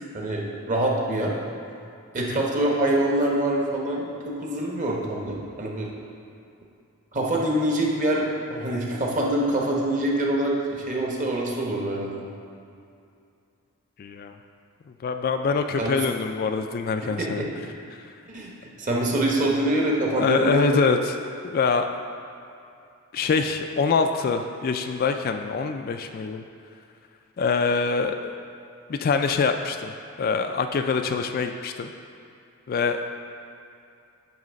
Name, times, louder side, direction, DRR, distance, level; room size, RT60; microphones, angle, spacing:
voice 1, 0.0-1.3 2.1-5.9 7.1-12.2 15.8-16.1 17.0-17.6 18.3-20.8, right 1 dB, 35° right, -2 dB, 1.1 m, -25 dB
voice 2, 14.0-14.3 15.0-17.5 20.1-21.0 21.4-21.9 23.1-26.4 27.4-28.3 28.9-29.9 30.2-31.9 32.7-33.1, left 5 dB, 45° left, 6 dB, 0.3 m, -24 dB
9.0 x 3.2 x 6.2 m, 2.6 s
head